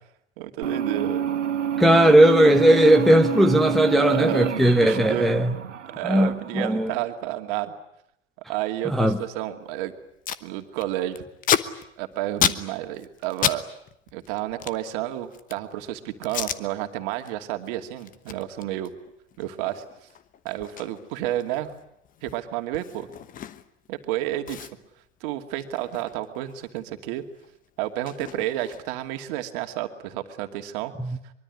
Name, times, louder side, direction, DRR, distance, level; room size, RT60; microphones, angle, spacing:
voice 1, 0.4-1.2 2.0-2.1 3.9-5.4 5.9-7.7 8.5-9.9 10.4-11.2 12.0-13.6 14.1-18.9 19.4-19.8 20.4-21.7 22.2-23.2 23.9-24.7 25.2-27.2 27.8-30.9, right 13 dB, 45° right, 6 dB, 2.6 m, -31 dB
sound 1, 0.6-7.0, right 8 dB, 75° right, 1.7 m, -28 dB
voice 2, 1.8-5.5 6.0-6.9 8.8-9.2 31.0-31.2, equal, ahead, 4 dB, 1.1 m, -18 dB
Packing tape duct tape, 9.7-9.8 10.0-10.4 10.8-13.6 13.9-15.7 16.2-16.6 17.1-17.3 17.6-23.9 24.1-24.2 24.5-26.8 27.1-29.1, left 9 dB, 20° left, 1.1 m, -31 dB
24.0 x 23.5 x 9.7 m, 0.78 s
figure-of-eight pair, 100°, 37 cm